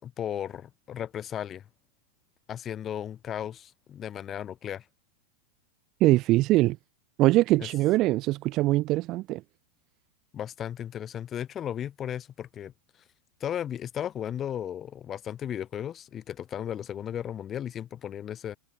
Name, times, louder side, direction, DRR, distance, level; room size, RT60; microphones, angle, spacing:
voice 1, 0.0-1.6 2.5-4.8 7.6-7.7 10.3-12.7 13.4-18.6, left 10 dB, 25° left, 4.7 m, -35 dB
voice 2, 6.0-6.8 7.2-9.4, right 18 dB, 40° right, 0.4 m, -22 dB
figure-of-eight pair, 90°, 0 cm